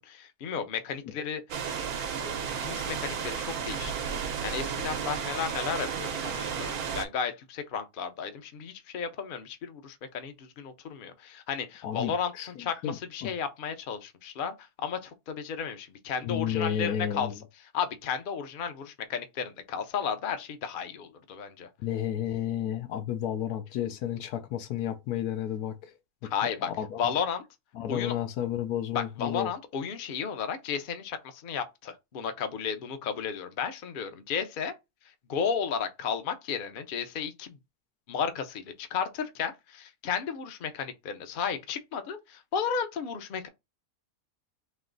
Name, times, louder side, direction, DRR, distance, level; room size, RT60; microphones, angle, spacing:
voice 1, 0.0-1.6 2.2-4.1 4.4-17.3 17.7-21.7 26.2-26.7 27.0-27.4 27.9-28.1 28.9-34.7 35.3-37.6 38.1-43.5, left 7 dB, 50° left, 0.6 m, -33 dB
sound 1, 1.5-7.1, right 7 dB, 80° right, 1.2 m, -33 dB
voice 2, 11.8-12.5 12.8-13.3 16.2-17.3 21.8-25.9 26.2-26.3 26.6-27.1 27.7-29.5, left 10 dB, 90° left, 1.2 m, -32 dB
3.3 x 2.9 x 3.8 m
omnidirectional pair, 1.6 m